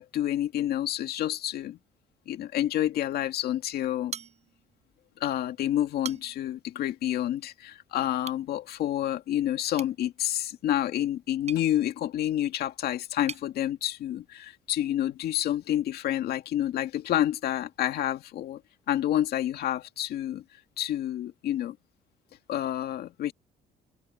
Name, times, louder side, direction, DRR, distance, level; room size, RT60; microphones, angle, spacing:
voice 1, 0.0-1.8 2.3-4.1 5.2-18.6 18.9-20.4 20.8-21.8 22.5-23.3, left 12 dB, 70° left, 2.1 m, -29 dB
sound 1, 4.1-4.9 5.2-5.3 5.8-6.6 8.2-8.5 9.7-13.5, right 7 dB, 40° right, 5.5 m, -43 dB
cardioid pair, 110°, 17 cm